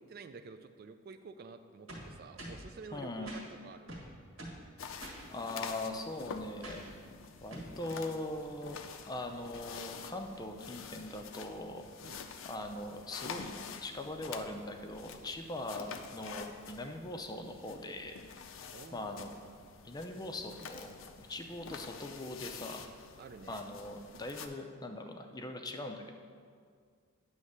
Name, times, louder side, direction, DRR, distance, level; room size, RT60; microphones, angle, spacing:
voice 1, 0.0-3.9 12.0-12.2 18.7-19.4 23.2-23.6, right 4 dB, 45° right, 9 dB, 0.3 m, -50 dB
sound 1, 1.9-2.7 3.3-3.4 3.9-4.7 5.0-5.2 6.6-7.0 7.5-7.8, right 1 dB, 85° right, 1.6 m, -45 dB
voice 2, 2.9-3.4 5.3-6.9 7.4-8.8 9.1-11.8 12.4-13.5 13.8-18.1 18.9-19.3 19.8-20.9 21.2-22.9 23.5-26.1, left 2 dB, 20° left, 4 dB, 0.5 m, -41 dB
sound 2, 4.8-24.5, left 6 dB, 70° left, 0.5 m, -48 dB
9.3 x 3.2 x 6.5 m, 2.1 s
head